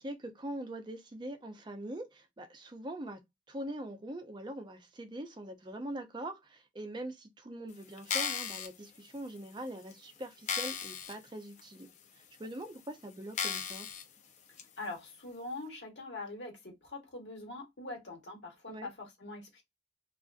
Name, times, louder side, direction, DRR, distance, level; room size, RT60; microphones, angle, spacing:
voice 1, 0.0-3.2 3.5-11.9 12.4-13.9 18.7-18.9, right 1 dB, 25° right, 0.5 m, -42 dB
sound 1, 8.0-8.7 9.4-9.5 9.9-10.0 10.5-11.1 11.6-11.7 12.4-12.5 13.3-14.0 14.6-14.7, left 6 dB, 45° left, 0.4 m, -35 dB
voice 2, 14.8-19.6, left 2 dB, 80° left, 1.2 m, -43 dB
2.5 x 2.4 x 2.3 m
head